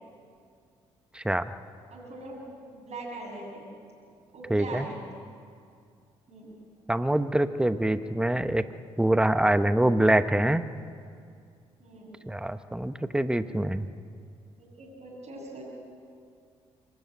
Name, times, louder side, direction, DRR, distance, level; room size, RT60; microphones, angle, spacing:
voice 1, 1.9-3.7 4.3-5.0 6.3-6.6 11.8-12.1 14.8-15.6, right 2 dB, 50° right, -4 dB, 7.0 m, -41 dB
voice 2, 4.5-4.9 6.9-8.6 9.0-10.6 12.3-13.9, right 1 dB, 5° right, 11 dB, 1.0 m, -24 dB
24.5 x 14.0 x 9.5 m, 2.3 s
hypercardioid pair, 50°, 14 cm